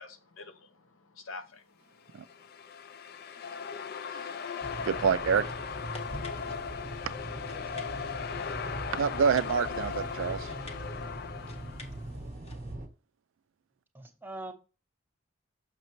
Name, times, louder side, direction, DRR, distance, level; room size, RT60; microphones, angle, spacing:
voice 1, 0.0-2.5, left 3 dB, 75° left, 0.8 m, -48 dB
sound 1, 2.1-12.0, left 6 dB, 45° left, 0.3 m, -38 dB
sound 2, 4.6-12.8, left 2 dB, 30° left, 0.7 m, -53 dB
sound 3, 4.6-12.9, right 1 dB, 35° right, 0.9 m, -42 dB
voice 2, 4.9-5.5 8.9-10.5 12.1-12.5, right 6 dB, 70° right, 0.3 m, -27 dB
voice 3, 7.1-7.9 8.6-9.2 13.9-14.5, right 2 dB, 10° right, 0.6 m, -45 dB
6.4 x 5.9 x 2.9 m
head